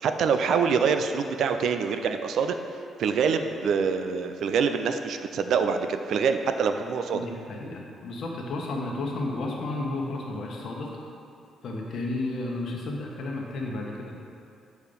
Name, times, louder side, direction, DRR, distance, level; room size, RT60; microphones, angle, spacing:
voice 1, 0.0-2.6 3.0-7.2, right 6 dB, 65° right, 7 dB, 0.4 m, -25 dB
voice 2, 7.1-10.9 11.6-14.2, left 2 dB, 55° left, -1 dB, 1.1 m, -32 dB
6.9 x 4.6 x 5.3 m, 2.5 s
cardioid pair, 150°, 0 cm